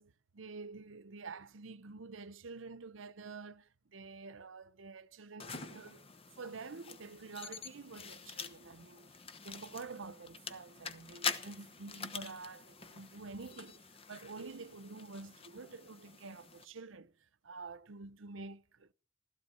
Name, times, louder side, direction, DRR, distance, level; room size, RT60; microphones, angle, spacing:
voice 1, 0.0-6.1 6.4-9.1 9.4-17.1 17.4-18.9, right 4 dB, 85° right, 0.8 m, -48 dB
sound 1, 5.4-16.6, left 5 dB, 30° left, 1.0 m, -45 dB
15.5 x 13.5 x 5.7 m
head